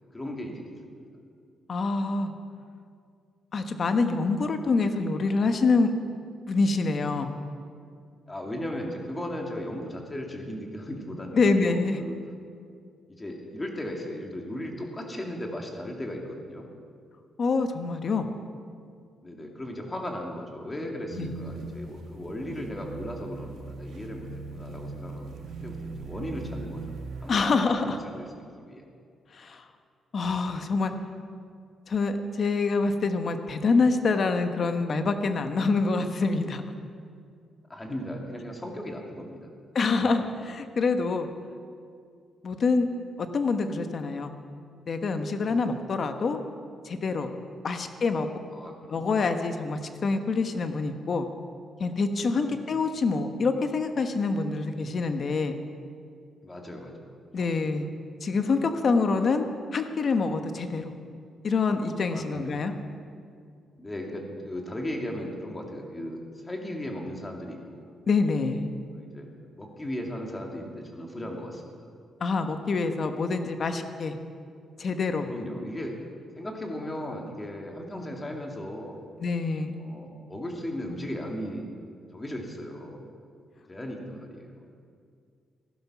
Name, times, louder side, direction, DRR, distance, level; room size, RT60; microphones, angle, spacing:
voice 1, 0.1-1.0 8.3-12.1 13.1-16.7 19.2-24.3 24.5-26.8 27.2-28.9 37.7-39.5 40.0-40.1 48.5-49.1 52.3-52.7 56.4-57.7 58.3-58.5 59.2-59.3 62.1-62.6 63.8-67.9 68.9-71.9 75.2-75.9 76.4-79.0 79.8-81.7 82.1-83.0 83.7-84.6, left 1 dB, 20° left, 1 dB, 2.4 m, -37 dB
voice 2, 1.7-2.3 3.5-5.9 6.5-7.3 11.3-12.0 17.4-18.3 21.2-21.3 27.3-28.0 29.3-29.6 30.1-30.9 31.9-36.6 39.7-41.3 42.4-42.9 43.2-44.3 44.9-46.4 46.8-47.3 47.6-48.3 48.9-51.3 51.8-55.6 57.3-57.9 58.2-59.4 59.7-60.9 61.4-62.7 68.1-68.7 72.2-74.2 74.8-75.3 79.2-79.7, left 4 dB, 50° left, 7 dB, 1.2 m, -26 dB
sound 1, 21.1-27.6, right 3 dB, 75° right, 1.6 m, -39 dB
15.0 x 12.0 x 6.1 m, 2.3 s
cardioid pair, 95°, 0 cm